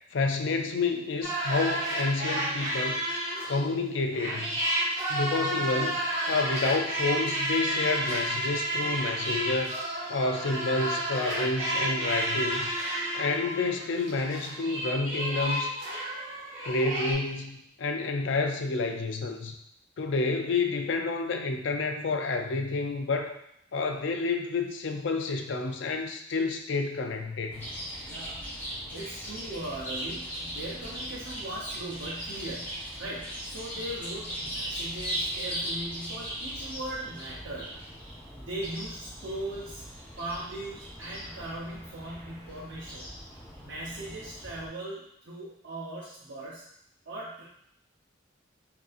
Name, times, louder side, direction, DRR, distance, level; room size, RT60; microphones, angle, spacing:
voice 1, 0.1-3.1 3.4-4.5 5.1-9.8 10.1-12.7 13.1-15.8 16.6-19.6 20.0-23.4 23.7-27.7, left 3 dB, 65° left, 5 dB, 0.4 m, -29 dB
sound 1, 1.2-3.7 4.1-17.1, right 1 dB, 30° right, 1.1 m, -31 dB
Chirp tweet, 27.5-44.7, equal, 10° left, 1.0 m, -39 dB
voice 2, 28.0-28.5 28.9-37.7 38.0-39.8 40.2-43.1 43.6-46.6 47.1-47.4, right 1 dB, 65° right, -8 dB, 0.7 m, -39 dB
5.0 x 2.7 x 2.4 m, 0.74 s
head